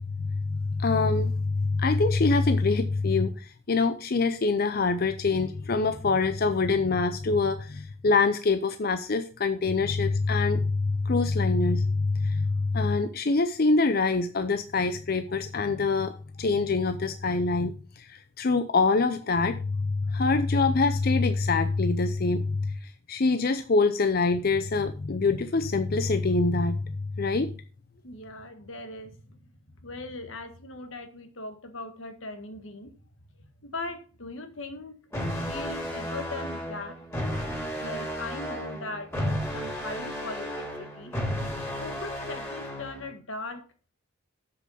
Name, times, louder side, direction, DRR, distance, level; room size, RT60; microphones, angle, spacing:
voice 1, 0.1-27.5, left 3 dB, 50° left, 0.6 m, -25 dB
voice 2, 28.0-32.9 33.6-35.0 35.3-37.0 37.8-41.2 41.8-43.7, left 2 dB, 80° left, 1.7 m, -39 dB
sound 1, 35.1-43.1, equal, 15° left, 3.0 m, -33 dB
7.6 x 6.7 x 5.6 m
head